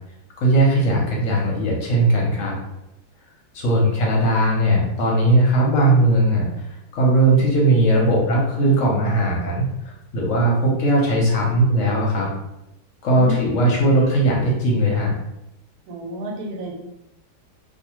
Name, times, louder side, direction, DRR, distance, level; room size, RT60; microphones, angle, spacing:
voice 1, 0.4-2.5 3.5-6.7 6.9-12.3 13.0-15.1, right 1 dB, 60° left, -2 dB, 0.9 m, -18 dB
voice 2, 13.1-13.5 15.9-16.7, right 1 dB, 70° right, 0 dB, 1.1 m, -31 dB
2.5 x 2.3 x 2.9 m, 0.89 s
omnidirectional pair, 1.7 m